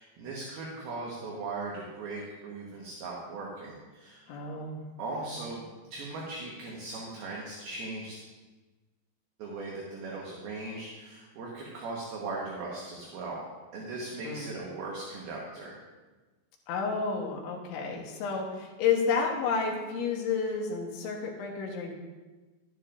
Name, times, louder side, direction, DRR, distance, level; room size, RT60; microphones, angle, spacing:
voice 1, 0.0-4.3 5.0-8.2 9.4-13.4 13.7-15.8, right 3 dB, 65° right, -4 dB, 2.9 m, -39 dB
voice 2, 4.3-4.8 5.2-5.3 14.2-14.5 16.7-21.9, left 5 dB, 80° left, 0 dB, 3.5 m, -31 dB
12.0 x 11.5 x 2.6 m, 1.2 s
omnidirectional pair, 5.3 m